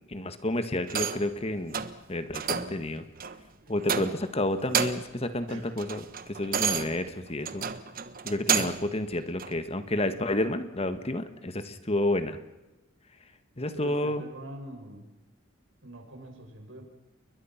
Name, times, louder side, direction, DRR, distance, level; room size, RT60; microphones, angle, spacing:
voice 1, 0.1-1.8 2.1-3.0 3.7-6.0 6.3-7.6 8.2-12.4 13.6-14.2, left 1 dB, 30° left, 10 dB, 1.6 m, -30 dB
sound 1, 0.9-1.3 1.7-2.0 2.3-2.8 3.2-3.4 3.8-4.3 4.6-5.2 5.5-8.9 9.4-9.5, right 7 dB, 45° right, 1.3 m, -30 dB
voice 2, 13.7-15.1 15.8-16.8, right 1 dB, 75° right, 3 dB, 6.5 m, -44 dB
29.5 x 22.5 x 5.9 m, 1.0 s
head